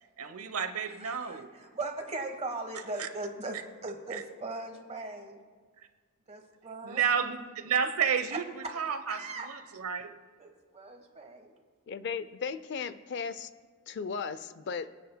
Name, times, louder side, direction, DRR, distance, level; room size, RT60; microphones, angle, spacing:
voice 1, 0.2-1.5 3.0-3.1 4.1-4.2 6.8-10.2, right 7 dB, 85° right, 8 dB, 0.9 m, -31 dB
voice 2, 1.0-5.4 6.3-7.0 9.1-9.5 10.4-11.5, right 2 dB, 30° right, 4 dB, 1.2 m, -39 dB
voice 3, 11.9-13.5 13.9-14.9, left 5 dB, 50° left, 14 dB, 0.4 m, -36 dB
26.0 x 9.3 x 2.2 m, 1.5 s
head